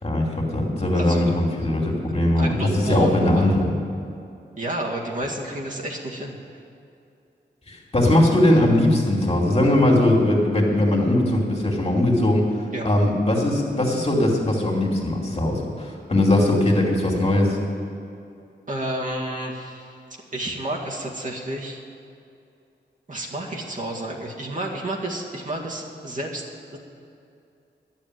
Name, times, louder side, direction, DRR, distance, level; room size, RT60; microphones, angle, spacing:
voice 1, 0.0-3.7 7.7-12.4 12.8-17.6, left 1 dB, 30° left, -2 dB, 2.6 m, -20 dB
voice 2, 0.9-1.3 2.4-3.6 4.6-6.6 12.7-12.9 18.7-20.0 20.3-21.8 23.1-26.5 26.7-26.8, right 1 dB, 45° right, -2 dB, 2.0 m, -31 dB
11.0 x 7.4 x 9.7 m, 2.6 s
cardioid pair, 70°, 19 cm